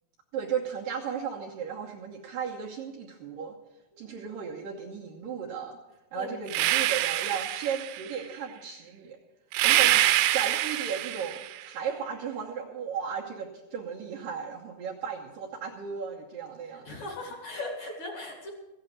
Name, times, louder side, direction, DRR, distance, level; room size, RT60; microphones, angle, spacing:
voice 1, 0.3-3.5 4.0-5.8 6.1-9.2 9.6-10.1 10.3-17.0, right 7 dB, 65° right, -2 dB, 2.4 m, -35 dB
sound 1, 6.5-8.1 9.5-11.6, right 14 dB, 90° right, 2.9 m, -25 dB
voice 2, 16.7-18.5, left 2 dB, 45° left, 1 dB, 3.0 m, -38 dB
15.5 x 8.9 x 7.4 m, 1.0 s
omnidirectional pair, 5.0 m